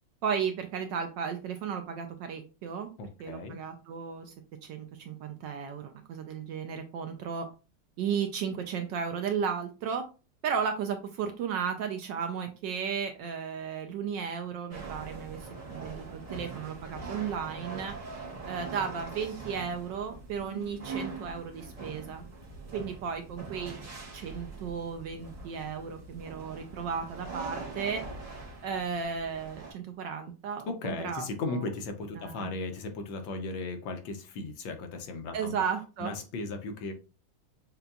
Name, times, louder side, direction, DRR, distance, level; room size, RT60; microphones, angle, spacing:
voice 1, 0.2-2.9 3.2-4.3 4.6-7.5 8.0-10.0 10.4-18.0 18.5-22.2 22.7-23.8 24.1-28.0 28.6-31.6 32.2-32.5 35.3-36.1, right 6 dB, 75° right, 6 dB, 1.1 m, -34 dB
voice 2, 3.0-3.6 30.7-35.6 36.0-36.9, left 3 dB, 70° left, 5 dB, 1.3 m, -36 dB
Movements before theater, 14.7-29.7, right 3 dB, 50° right, 0.4 m, -42 dB
6.6 x 2.3 x 2.3 m, 0.32 s
omnidirectional pair, 2.3 m